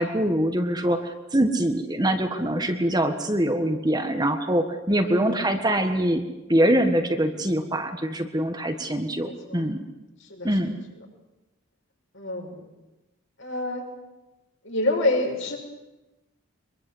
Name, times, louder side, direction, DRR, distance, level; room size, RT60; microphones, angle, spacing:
voice 1, 0.0-6.2 6.5-9.9 10.4-10.8, right 1 dB, 20° right, 5 dB, 1.5 m, -24 dB
voice 2, 4.9-5.5 9.2-9.6 10.2-10.5 12.1-12.6 13.4-13.8 14.6-15.6, left 2 dB, 60° left, 1 dB, 6.6 m, -27 dB
24.0 x 23.0 x 8.0 m, 1.0 s
head